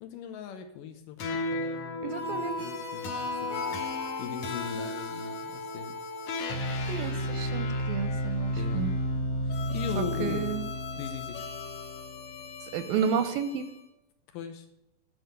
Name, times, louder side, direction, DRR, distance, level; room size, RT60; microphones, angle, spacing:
voice 1, 0.0-6.0 8.6-8.9 9.4-10.5 10.9-11.5 14.3-14.7, left 7 dB, 75° left, 7 dB, 2.2 m, -39 dB
sound 1, 1.2-13.7, left 1 dB, 60° left, 2.2 m, -33 dB
voice 2, 2.0-2.6 6.8-8.9 10.0-10.6 12.7-13.7, right 7 dB, 80° right, 11 dB, 2.3 m, -31 dB
9.7 x 4.8 x 7.8 m, 0.87 s
omnidirectional pair, 4.3 m